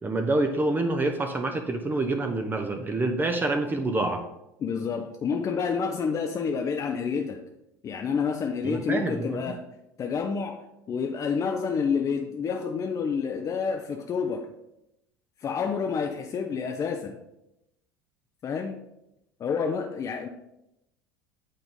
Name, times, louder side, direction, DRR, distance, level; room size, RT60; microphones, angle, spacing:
voice 1, 0.0-4.2 8.6-9.4, right 2 dB, 20° right, 5 dB, 0.7 m, -27 dB
voice 2, 4.6-7.4 7.8-9.6 10.0-10.6 10.9-14.5 15.4-17.2 18.4-18.8 19.4-20.3, left 6 dB, 35° left, 4 dB, 0.6 m, -29 dB
8.6 x 3.8 x 3.6 m, 0.86 s
hypercardioid pair, 75°, 10 cm